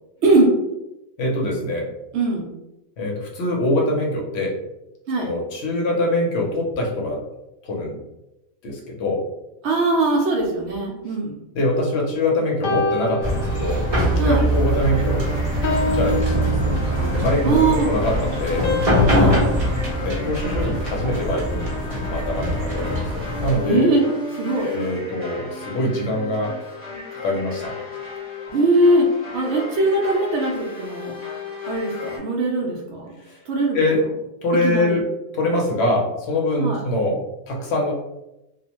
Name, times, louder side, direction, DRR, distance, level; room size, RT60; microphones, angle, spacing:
voice 1, 0.2-0.5 2.1-2.5 5.1-5.3 9.6-11.4 14.2-14.4 17.4-17.9 19.1-19.4 23.6-24.1 24.4-24.7 28.5-29.1 29.3-31.1 31.7-33.2 33.5-33.8 34.6-35.0 36.6-36.8, right 2 dB, 65° right, -2 dB, 0.7 m, -20 dB
voice 2, 1.2-1.9 3.0-4.6 5.2-7.2 7.6-8.0 8.6-9.2 11.5-13.9 14.2-15.4 15.9-16.8 17.1-18.7 20.0-21.7 22.1-23.9 24.6-26.5 27.2-27.8 33.3-33.4 33.7-34.0 34.4-35.0 35.3-37.9, left 1 dB, 60° left, -1 dB, 0.8 m, -24 dB
sound 1, 12.6-14.2 14.6-15.0 15.6-17.3 18.6-21.0, left 3 dB, 80° left, 0.4 m, -29 dB
sound 2, 13.2-23.6, equal, 35° right, 0.7 m, -22 dB
sound 3, 13.9-32.2, left 1 dB, 25° left, 0.8 m, -34 dB
2.4 x 2.1 x 2.8 m, 0.92 s
omnidirectional pair, 1.4 m